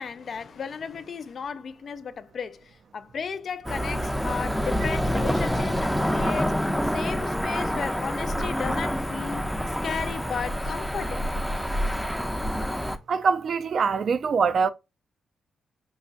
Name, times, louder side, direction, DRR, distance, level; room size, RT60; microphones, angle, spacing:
voice 1, 0.0-11.3, left 6 dB, 60° left, 0.3 m, -35 dB
Cricket / Motor vehicle (road), 3.6-13.0, equal, ahead, 0.5 m, -27 dB
voice 2, 13.1-14.7, right 5 dB, 60° right, 0.3 m, -23 dB
5.4 x 2.2 x 2.4 m
cardioid pair, 65°, 0 cm